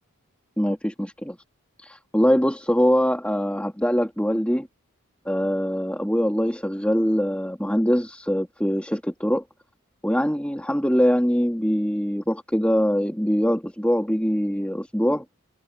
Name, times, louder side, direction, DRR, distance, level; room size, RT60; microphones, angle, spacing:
voice 1, 0.6-1.4 1.8-4.7 5.2-9.4 10.0-15.2, equal, 5° left, 3.0 m, -23 dB
head